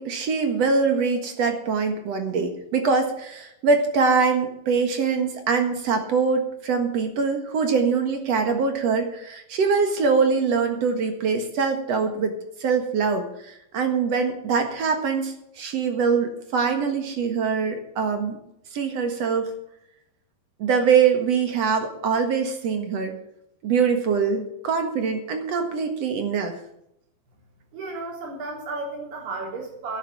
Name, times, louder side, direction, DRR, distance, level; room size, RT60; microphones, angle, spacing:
voice 1, 0.0-12.3 12.6-18.4 18.7-19.5 20.6-23.1 23.6-26.5, right 5 dB, 55° right, 6 dB, 2.2 m, -23 dB
voice 2, 27.7-30.0, right 3 dB, 90° right, 0 dB, 5.7 m, -33 dB
12.0 x 9.5 x 7.3 m, 0.78 s
omnidirectional pair, 4.4 m